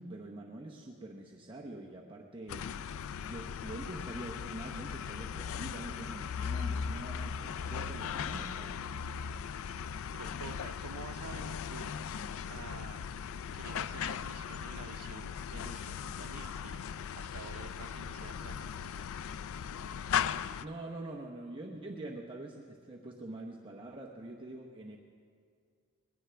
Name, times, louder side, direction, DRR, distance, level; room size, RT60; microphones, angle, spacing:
voice 1, 0.0-2.7 3.2-8.8 20.6-25.0, right 1 dB, 25° right, -1 dB, 0.8 m, -45 dB
sound 1, 2.5-20.7, left 7 dB, 65° left, 0.4 m, -38 dB
voice 2, 10.1-12.0 12.5-13.0 13.5-16.9 17.2-19.0, right 5 dB, 75° right, 9 dB, 0.7 m, -49 dB
21.5 x 17.5 x 3.4 m, 2.2 s
head